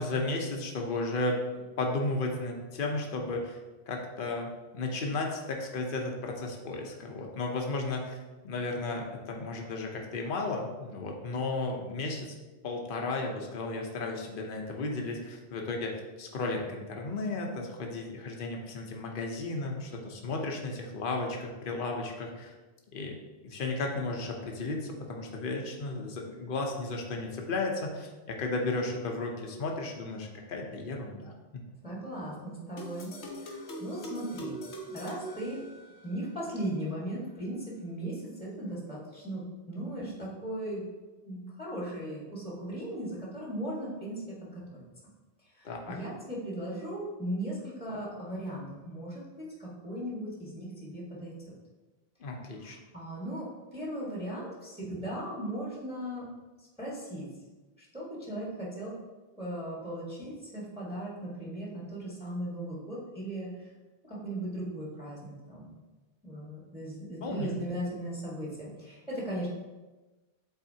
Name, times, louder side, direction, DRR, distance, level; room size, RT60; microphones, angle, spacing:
voice 1, 0.0-1.4 1.8-3.6 3.9-8.2 8.4-12.3 12.6-22.5 22.9-31.3 45.6-46.0 52.2-52.8 67.2-67.6, left 2 dB, 55° left, 1 dB, 1.0 m, -34 dB
voice 2, 31.8-34.6 34.9-35.6 36.0-40.8 41.2-44.8 45.5-51.5 52.6-56.3 56.8-57.3 57.8-58.9 59.3-63.7 64.0-65.8 66.2-69.5, right 1 dB, 5° right, -6 dB, 1.4 m, -37 dB
sound 1, 32.8-36.2, right 1 dB, 85° left, 1.2 m, -42 dB
8.2 x 4.1 x 2.8 m, 1.2 s
omnidirectional pair, 1.1 m